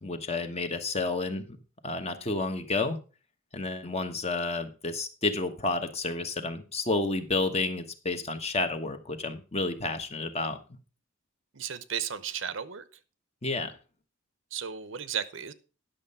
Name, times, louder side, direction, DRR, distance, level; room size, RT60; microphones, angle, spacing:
voice 1, 0.0-1.5 1.8-3.0 3.5-10.6 13.4-13.7, left 3 dB, 30° left, 8 dB, 1.1 m, -30 dB
voice 2, 11.5-12.8 14.5-15.5, right 8 dB, 65° right, 15 dB, 0.8 m, -34 dB
10.5 x 6.5 x 5.4 m, 0.35 s
head